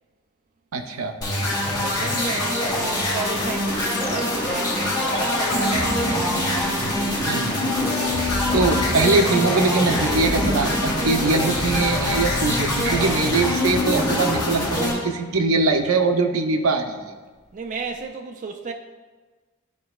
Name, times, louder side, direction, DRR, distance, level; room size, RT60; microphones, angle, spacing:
voice 1, 0.7-1.1 7.3-7.8 8.5-17.1, right 3 dB, 90° right, 5 dB, 0.6 m, -22 dB
sound 1, 1.2-14.9, left 1 dB, 20° left, 1.9 m, -24 dB
voice 2, 1.8-6.6 17.5-18.7, right 4 dB, 35° right, 3 dB, 0.4 m, -34 dB
sound fx, 3.8-15.8 16.0-16.1, left 1 dB, 65° left, 1.4 m, -29 dB
12.0 x 4.2 x 2.3 m, 1.4 s
head